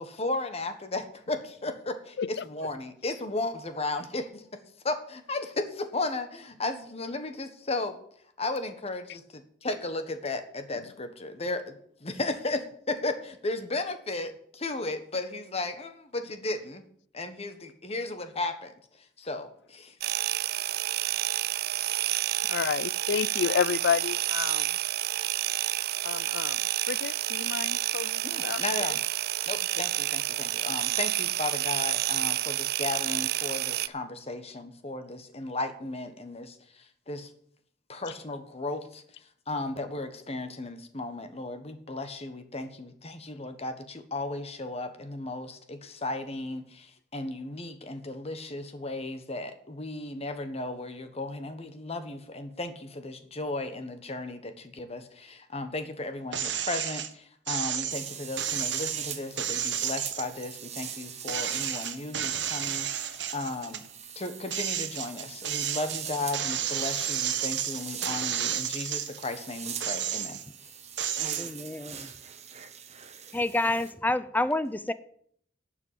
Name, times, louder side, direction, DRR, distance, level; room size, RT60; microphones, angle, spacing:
voice 1, 0.0-4.6 4.8-8.0 8.4-9.2 9.6-11.6 12.0-12.6 12.9-14.3 14.6-16.8 17.1-18.7 19.2-19.9 28.2-29.0 29.5-36.6 37.1-37.3 37.9-39.0 39.5-63.8 64.1-70.4, left 2 dB, 35° left, 1.4 m, -35 dB
sound 1, 20.0-33.9, right 15 dB, 60° right, 0.4 m, -29 dB
voice 2, 22.5-24.7 26.0-26.6 26.9-29.0, left 7 dB, 70° left, 0.4 m, -30 dB
sound 2, 56.3-57.1 57.5-60.9 61.3-63.9 64.3-69.3 69.7-70.5 71.0-71.5, right 9 dB, 80° right, 1.2 m, -31 dB
sound 3, 57.9-73.9, right 8 dB, 40° right, 1.2 m, -43 dB
voice 3, 71.4-72.1 73.3-74.9, left 2 dB, 10° left, 0.5 m, -28 dB
11.5 x 6.1 x 8.6 m
head